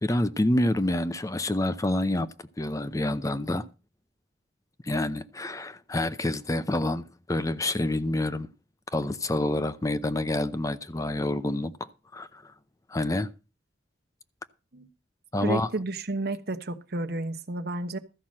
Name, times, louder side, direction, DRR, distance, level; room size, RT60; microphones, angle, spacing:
voice 1, 0.0-3.7 4.8-8.5 8.9-12.5 12.9-13.3 15.3-15.7, left 1 dB, 20° left, 0.6 m, -28 dB
voice 2, 15.4-18.0, right 2 dB, 60° right, 1.1 m, -31 dB
13.5 x 5.8 x 7.6 m
head